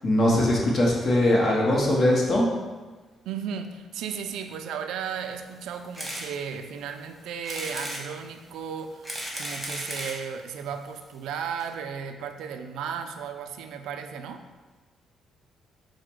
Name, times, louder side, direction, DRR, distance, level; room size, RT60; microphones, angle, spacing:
voice 1, 0.0-2.5, left 1 dB, 50° left, -2 dB, 1.1 m, -21 dB
voice 2, 3.3-14.4, right 7 dB, 85° right, 7 dB, 0.3 m, -35 dB
sound 1, 5.9-6.3 6.7-6.8 7.4-8.0 8.8-10.2 11.0-11.1 11.3-11.4 11.6-11.7, right 1 dB, 5° right, 1.2 m, -34 dB
4.8 x 2.1 x 4.5 m, 1.3 s
cardioid pair, 90°, 0 cm